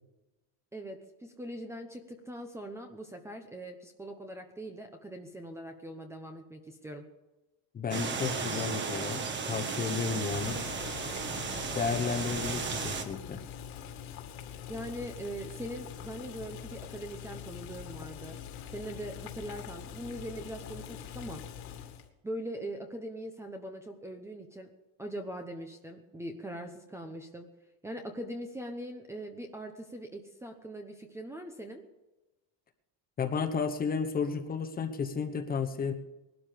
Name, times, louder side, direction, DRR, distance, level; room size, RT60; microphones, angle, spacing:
voice 1, 0.7-7.1 14.7-18.4 18.7-21.4 22.2-24.7 25.0-27.5 27.8-31.8, right 1 dB, 5° right, 5 dB, 0.9 m, -41 dB
voice 2, 7.7-10.6 11.7-13.4 33.2-35.9, left 5 dB, 20° left, 6 dB, 1.1 m, -32 dB
sound 1, 7.9-13.0, right 5 dB, 25° right, 1.5 m, -35 dB
Boiling, 10.3-22.1, left 9 dB, 65° left, 2.3 m, -44 dB
20.0 x 12.0 x 5.2 m, 1.1 s
cardioid pair, 175°, 41 cm